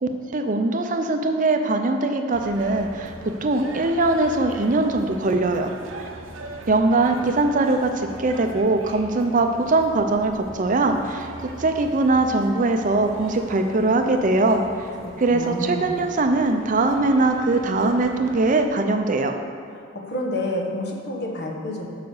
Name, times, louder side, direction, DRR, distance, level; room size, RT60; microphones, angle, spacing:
voice 1, 0.0-3.1 3.4-5.7 6.0-6.1 6.7-14.6 15.2-19.3, right 2 dB, 40° right, 5 dB, 0.5 m, -21 dB
sound 1, 2.3-18.7, right 2 dB, 80° right, 0.8 m, -41 dB
voice 2, 15.0-16.0 19.9-21.9, left 1 dB, 55° left, 0 dB, 1.2 m, -29 dB
7.0 x 5.1 x 6.5 m, 2.5 s
head